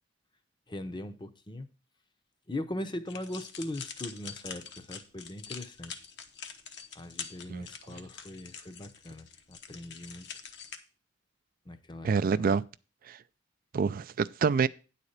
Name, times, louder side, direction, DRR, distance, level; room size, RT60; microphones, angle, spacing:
voice 1, 0.7-1.7 2.5-6.0 6.9-10.3 11.7-12.5, left 1 dB, 25° left, 0.7 m, -40 dB
sound 1, 3.1-10.8, left 6 dB, 65° left, 1.0 m, -45 dB
voice 2, 12.0-12.6 13.1-13.2 13.7-14.7, right 5 dB, 50° right, 0.4 m, -26 dB
9.6 x 4.2 x 6.5 m
head